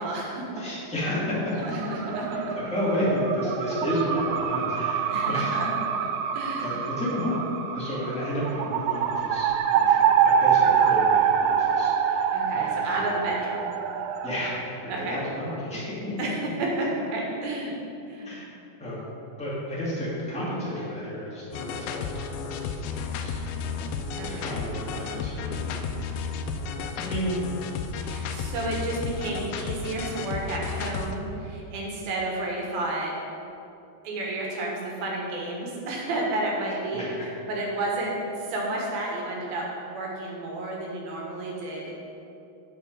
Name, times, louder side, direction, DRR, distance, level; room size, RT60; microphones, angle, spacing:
voice 1, 0.0-0.5 1.6-2.6 5.1-5.7 5.9-6.1 6.3-6.9 12.3-13.7 14.9-15.2 16.2-17.7 18.1-18.4 24.1-24.6 28.0-33.1 34.0-37.0 37.5-41.9, right 2 dB, 70° right, -2 dB, 3.0 m, -31 dB
voice 2, 0.6-1.8 2.3-5.6 6.6-7.3 7.7-13.4 14.2-15.9 18.2-18.4 18.8-19.0 19.4-23.3 24.3-25.9 26.9-27.4 28.0-28.4 36.9-37.1, equal, 10° left, -9 dB, 0.4 m, -32 dB
sound 1, 1.4-14.6, right 7 dB, 85° right, 2.2 m, -25 dB
sound 2, 21.5-31.2, left 5 dB, 85° left, 2.3 m, -33 dB
9.0 x 7.0 x 5.3 m, 2.8 s
omnidirectional pair, 4.8 m